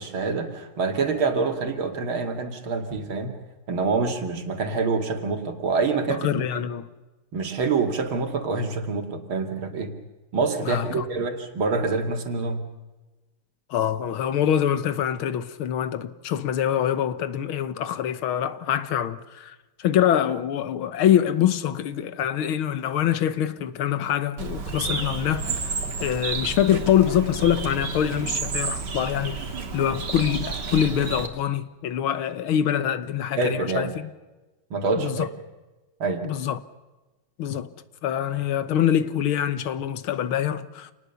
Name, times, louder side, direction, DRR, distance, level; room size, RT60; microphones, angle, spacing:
voice 1, 0.0-3.4 3.7-6.4 7.3-9.9 10.3-12.6 33.4-33.9 34.7-35.3 36.0-36.3, right 4 dB, 75° right, 3.0 m, -26 dB
voice 2, 6.1-6.8 10.6-11.0 13.7-29.5 29.7-34.1 35.0-35.3 36.2-36.6 37.4-37.7 38.0-40.9, left 10 dB, 80° left, 1.9 m, -25 dB
Bird, 24.4-31.3, right 4 dB, 55° right, 2.4 m, -31 dB
27.5 x 19.0 x 7.0 m
omnidirectional pair, 2.3 m